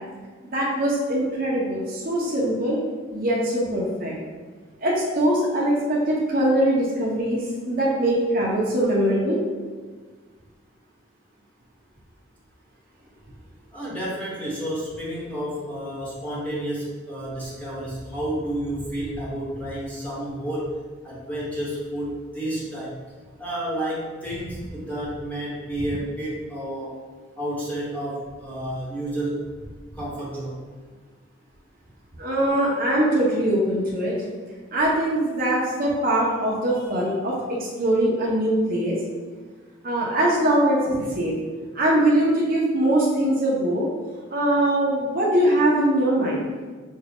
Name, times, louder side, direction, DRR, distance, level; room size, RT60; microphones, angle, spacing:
voice 1, 0.4-2.8 3.1-4.2 4.8-9.4 32.2-34.1 34.7-39.0 39.8-41.3 41.7-43.9 44.3-46.4, right 1 dB, 45° right, -4 dB, 0.8 m, -22 dB
voice 2, 13.7-20.8 21.0-23.0 23.4-27.0 27.4-29.5 29.9-30.6, right 1 dB, 10° left, -8 dB, 1.2 m, -30 dB
6.2 x 2.4 x 3.5 m, 1.4 s
head